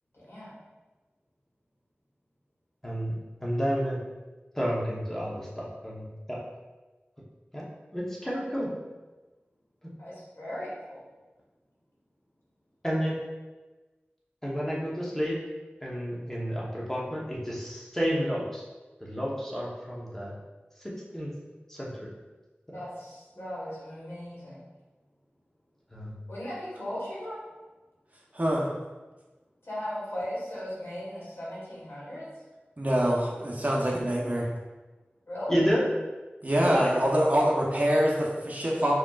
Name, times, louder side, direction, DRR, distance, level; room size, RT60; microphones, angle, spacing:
voice 1, 0.1-0.5 10.0-11.1 22.7-24.6 26.3-27.4 29.6-32.3 35.3-35.6, equal, 80° left, -8 dB, 1.5 m, -37 dB
voice 2, 2.8-3.2 3.4-4.0 4.5-6.4 7.5-7.6 7.9-8.7 12.8-13.1 14.4-15.4 15.8-18.6 19.0-20.3 20.8-21.3 21.7-22.1 25.9-26.2 35.5-35.8 36.6-36.9, equal, 10° left, -5 dB, 0.9 m, -30 dB
voice 3, 28.3-28.7 32.8-34.5 36.4-38.9, equal, 40° right, -3 dB, 0.8 m, -25 dB
4.9 x 2.9 x 2.4 m, 1.2 s
wide cardioid pair, 55°, 4 cm